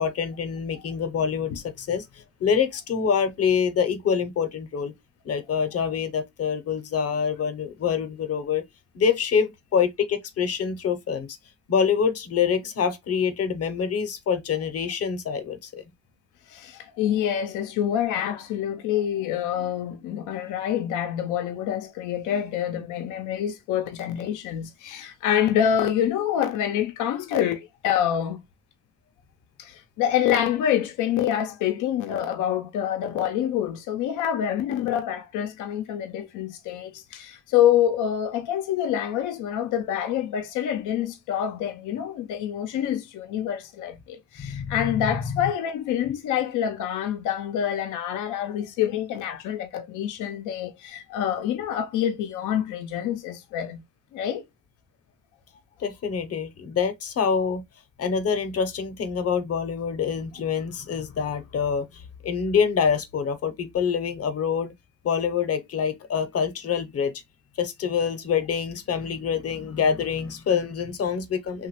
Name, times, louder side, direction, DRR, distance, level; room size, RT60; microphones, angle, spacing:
voice 1, 0.0-4.9 5.2-8.6 8.9-11.3 11.7-15.8 44.4-45.4 55.8-57.6 58.0-64.7 65.0-67.1 67.6-71.7, left 6 dB, 55° left, 0.7 m, -26 dB
voice 2, 16.5-28.4 29.6-53.8 54.1-54.4, left 10 dB, 85° left, 0.5 m, -26 dB
3.0 x 2.2 x 3.0 m
cardioid pair, 90°, 30 cm